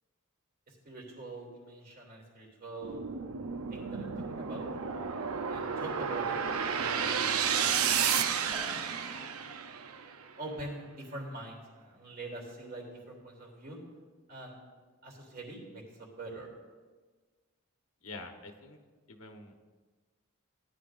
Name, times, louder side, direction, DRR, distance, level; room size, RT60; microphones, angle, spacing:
voice 1, 0.7-3.1 3.7-4.7 5.5-6.4 6.6-7.5 10.4-13.8 14.3-14.6 15.0-16.5, right 2 dB, 45° right, -1 dB, 3.1 m, -44 dB
sound 1, 2.8-10.1, right 7 dB, 85° right, 0.7 m, -32 dB
sound 2, 8.5-11.0, equal, 20° right, 0.8 m, -50 dB
voice 2, 18.0-18.8 19.1-19.5, left 2 dB, 80° left, 4 dB, 1.2 m, -46 dB
17.5 x 11.0 x 2.6 m, 1.4 s
head